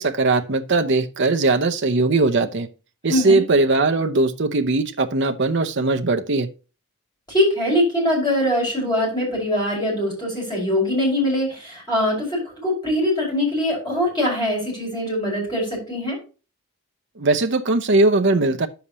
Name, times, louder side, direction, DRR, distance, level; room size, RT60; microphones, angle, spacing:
voice 1, 0.0-2.7 3.0-6.5 17.2-18.7, right 3 dB, 55° right, 0.7 m, -19 dB
voice 2, 3.1-3.4 7.3-16.2, left 1 dB, 20° left, 5.5 m, -22 dB
9.8 x 7.1 x 3.0 m
head